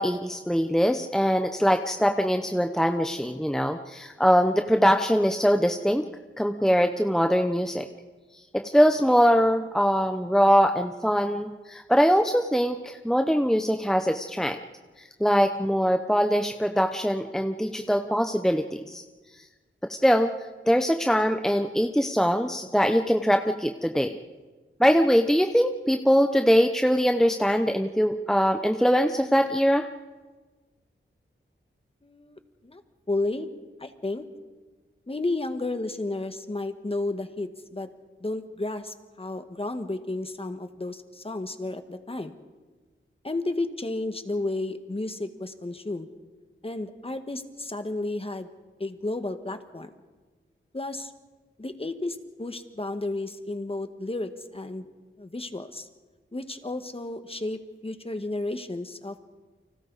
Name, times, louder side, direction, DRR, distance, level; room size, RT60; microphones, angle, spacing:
voice 1, 0.0-6.1 6.4-7.8 8.5-14.6 15.2-19.0 19.9-20.3 20.7-24.1 24.8-29.9, equal, ahead, 6 dB, 0.8 m, -22 dB
voice 2, 32.0-32.8 33.1-33.5 33.8-34.2 35.1-37.9 38.2-42.4 43.2-46.1 46.6-48.5 48.8-49.9 50.7-51.1 51.6-54.8 55.2-55.9 56.3-59.2, left 2 dB, 25° left, 8 dB, 1.5 m, -32 dB
30.0 x 25.0 x 4.1 m, 1.3 s
wide cardioid pair, 90°, 21 cm